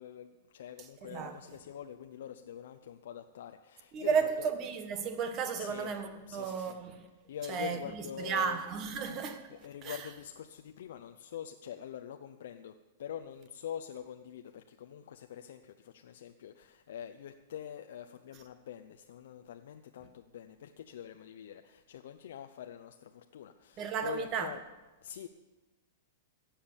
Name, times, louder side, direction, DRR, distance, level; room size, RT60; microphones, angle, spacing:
voice 1, 0.0-4.5 5.6-5.9 6.3-6.8 7.3-8.6 9.5-24.6 25.0-25.3, left 9 dB, 70° left, 0.6 m, -45 dB
voice 2, 1.0-1.4 3.9-7.1 7.5-9.4 9.8-10.1 23.8-24.5, right 6 dB, 30° right, 1.3 m, -34 dB
17.0 x 7.3 x 7.2 m
supercardioid pair, 160°, 0 cm